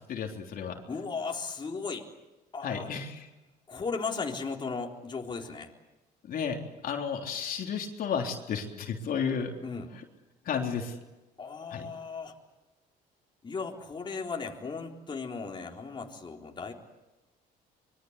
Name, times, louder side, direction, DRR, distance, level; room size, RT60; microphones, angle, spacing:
voice 1, 0.1-0.8 2.6-3.2 6.3-6.6 6.8-9.5 10.5-10.9 11.7-11.9, left 6 dB, 60° left, 2 dB, 3.5 m, -32 dB
voice 2, 0.9-2.1 2.5-2.9 3.7-5.7 9.6-9.9 11.4-12.3 13.4-16.7, left 4 dB, 30° left, 1 dB, 3.9 m, -36 dB
25.5 x 23.5 x 8.2 m, 1.1 s
cardioid pair, 110°, 17 cm